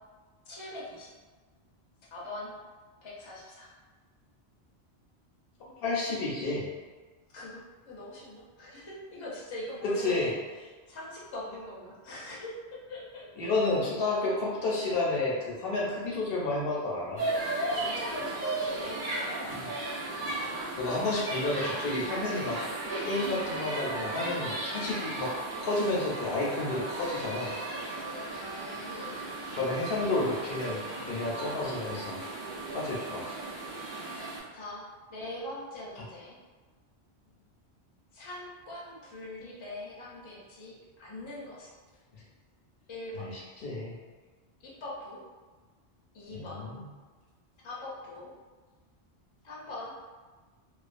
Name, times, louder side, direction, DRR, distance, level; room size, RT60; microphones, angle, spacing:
voice 1, 0.5-1.1 2.1-2.6 3.0-3.7 7.3-13.6 17.7-19.7 28.2-29.4 34.5-34.8 35.1-36.4 38.1-41.7 42.9-43.3 44.6-45.2 46.1-46.7 47.6-48.3 49.4-49.9, left 1 dB, 35° left, -6 dB, 0.5 m, -42 dB
voice 2, 5.6-6.7 10.0-10.3 13.4-17.3 19.5-19.7 20.8-22.6 23.0-25.3 25.6-27.5 29.5-32.2 32.7-33.3 43.2-44.0 46.3-46.8, left 2 dB, 70° left, -4 dB, 0.8 m, -31 dB
sound 1, 17.2-34.4, right 2 dB, 55° right, 0.8 m, -35 dB
2.4 x 2.2 x 2.4 m, 1.4 s
omnidirectional pair, 1.1 m